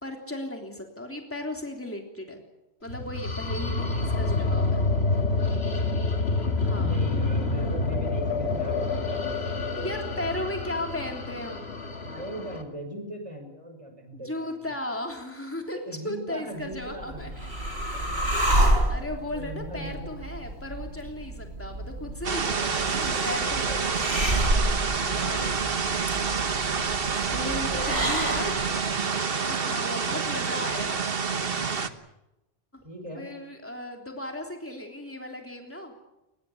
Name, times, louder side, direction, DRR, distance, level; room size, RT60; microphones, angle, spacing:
voice 1, 0.0-2.4 2.8-4.9 6.6-7.0 9.7-11.8 14.1-17.3 18.3-24.1 25.0-25.8 26.8-28.5 29.4-31.0 32.7-32.8 33.1-36.0, left 1 dB, 10° left, 2 dB, 3.3 m, -36 dB
sound 1, 2.9-12.6, left 3 dB, 75° left, 2.3 m, -27 dB
voice 2, 4.9-5.6 6.6-10.3 12.0-14.7 15.9-17.4 17.9-18.0 18.4-20.1 22.6-24.1 25.1-25.7 27.7-28.8 32.8-33.3, right 1 dB, 30° right, 5 dB, 5.9 m, -41 dB
sound 2, 16.7-28.8, right 1 dB, 80° right, 4.5 m, -29 dB
sound 3, 22.2-31.9, right 5 dB, 65° right, 1.5 m, -28 dB
22.0 x 21.0 x 8.5 m, 0.93 s
omnidirectional pair, 1.1 m